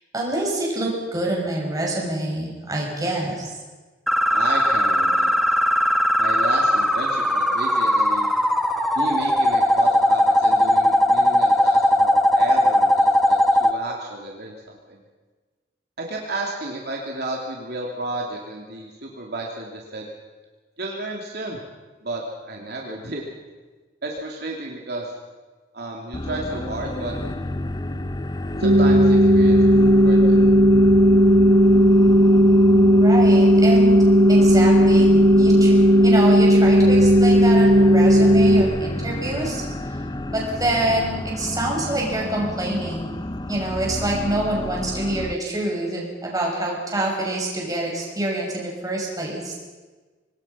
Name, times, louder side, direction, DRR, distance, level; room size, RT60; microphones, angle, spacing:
voice 1, 0.1-3.5 32.9-34.0 34.3-35.7 36.0-39.6 40.3-43.2 43.5-49.5, right 1 dB, 20° right, -2 dB, 6.1 m, -26 dB
sound 1, 4.1-13.7, equal, ahead, 1.2 m, -19 dB
voice 2, 4.3-5.4 6.2-8.3 8.9-15.0 16.0-20.1 20.8-21.6 22.0-22.2 22.5-23.3 24.0-25.1 25.7-27.1 28.6-30.4, right 2 dB, 60° right, -1 dB, 2.8 m, -32 dB
sound 2, 26.1-45.3, left 1 dB, 20° left, 0.7 m, -31 dB
sound 3, 28.6-38.6, equal, 75° right, 1.4 m, -14 dB
25.0 x 19.5 x 5.7 m, 1.3 s
head